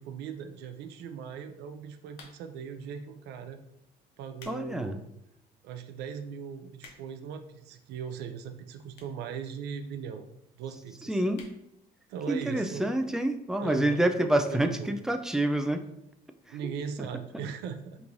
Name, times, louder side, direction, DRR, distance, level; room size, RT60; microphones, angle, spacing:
voice 1, 0.0-3.6 4.2-5.0 5.6-10.3 10.6-11.2 12.1-12.9 13.6-14.0 14.5-14.9 16.5-18.0, right 7 dB, 80° right, 8 dB, 0.5 m, -39 dB
sound 1, 2.1-2.7 3.4-3.6 4.1-4.6 5.1-5.2 5.8-5.9 6.1-6.2 6.4-7.3 8.1-8.2 8.9-9.3 9.6-9.7 9.9-10.0 10.2-10.3 10.6-10.8 11.3-11.6 12.0-12.1 12.3-12.4, left 4 dB, 85° left, 0.7 m, -52 dB
voice 2, 4.5-5.0 11.1-11.5 12.3-15.8, right 1 dB, 5° right, 6 dB, 0.3 m, -27 dB
5.2 x 3.0 x 2.5 m, 0.81 s
cardioid pair, 110°, 17 cm